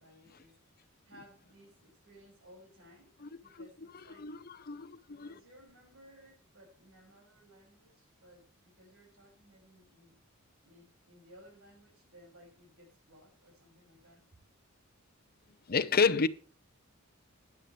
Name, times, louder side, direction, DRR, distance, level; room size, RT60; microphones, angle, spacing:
voice 1, 0.0-3.1 3.4-4.3 5.0-10.2 10.6-14.2, equal, 75° right, 5.9 m, -59 dB
voice 2, 4.2-5.3 15.7-16.3, left 5 dB, 45° left, 0.8 m, -29 dB
15.0 x 10.0 x 3.2 m
head